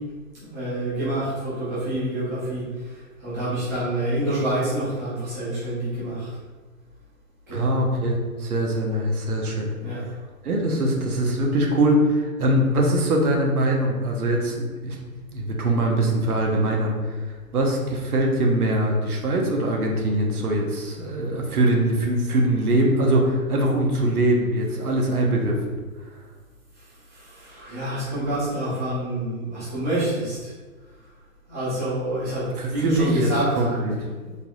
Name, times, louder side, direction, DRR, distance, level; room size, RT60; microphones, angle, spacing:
voice 1, 0.3-2.6 2.9-6.3 7.5-7.6 9.8-10.0 27.1-30.5 31.5-33.8 34.2-34.3, right 1 dB, 10° right, -12 dB, 0.7 m, -27 dB
voice 2, 7.5-9.7 10.4-15.0 15.3-25.6 32.6-34.1, right 1 dB, 80° right, 1 dB, 1.1 m, -22 dB
4.6 x 3.4 x 2.4 m, 1.3 s
hypercardioid pair, 170°, 44 cm